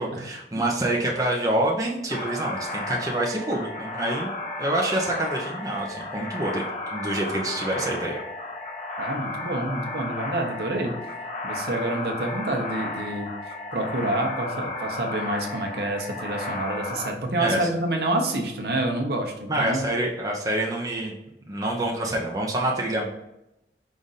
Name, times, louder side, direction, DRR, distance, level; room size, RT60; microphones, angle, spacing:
voice 1, 0.0-4.3 4.6-6.6 6.9-8.2 17.4-17.7 19.5-21.1 21.4-23.1, right 1 dB, 20° right, -2 dB, 0.6 m, -26 dB
sound 1, 2.1-17.1, left 2 dB, 40° left, 0.6 m, -33 dB
voice 2, 9.0-10.9 11.4-13.3 13.7-19.8, right 1 dB, 60° right, 2 dB, 0.8 m, -28 dB
5.0 x 2.5 x 4.0 m, 0.89 s
head